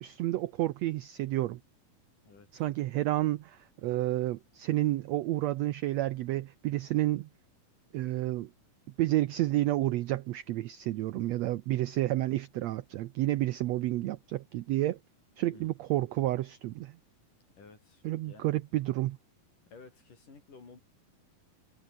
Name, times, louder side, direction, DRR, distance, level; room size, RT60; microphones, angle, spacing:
voice 1, 0.0-1.6 2.5-7.3 7.9-8.5 9.0-15.0 15.4-16.9 18.0-19.2, right 16 dB, 85° right, 1.5 m, -30 dB
voice 2, 2.2-2.7 15.5-15.7 17.6-18.5 19.7-20.8, left 4 dB, 65° left, 7.7 m, -53 dB
omnidirectional pair, 3.9 m